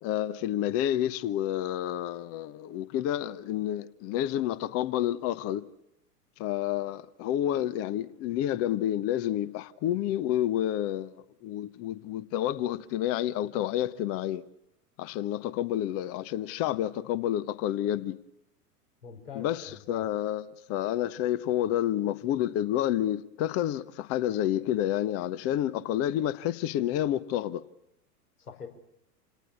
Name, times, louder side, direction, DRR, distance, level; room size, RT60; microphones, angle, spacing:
voice 1, 0.0-5.7 6.4-11.1 11.4-14.4 15.0-18.2 19.3-27.6, left 12 dB, 30° left, 1.0 m, -29 dB
voice 2, 19.0-20.1 28.4-28.7, left 6 dB, 70° left, 5.4 m, -43 dB
27.5 x 18.5 x 8.5 m
figure-of-eight pair, 95°, 48 cm